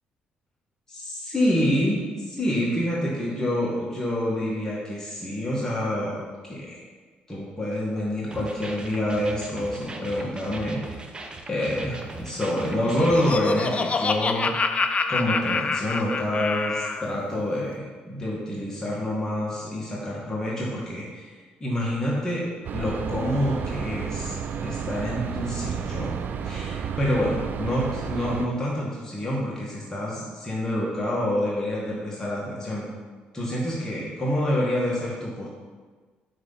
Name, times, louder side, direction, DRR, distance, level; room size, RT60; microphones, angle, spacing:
voice 1, 0.9-6.8 7.3-11.0 11.5-14.5 15.1-22.5 22.7-24.4 24.6-26.2 26.4-32.9 33.3-35.5, left 1 dB, 15° left, -6 dB, 1.9 m, -27 dB
sound 1, 8.3-13.4, right 3 dB, 25° right, 0.9 m, -40 dB
Laughter, 12.7-17.1, left 4 dB, 35° left, 0.5 m, -27 dB
sound 2, 22.6-28.5, right 7 dB, 60° right, 0.5 m, -31 dB
6.2 x 3.9 x 5.6 m, 1.4 s
supercardioid pair, 70°, 4 cm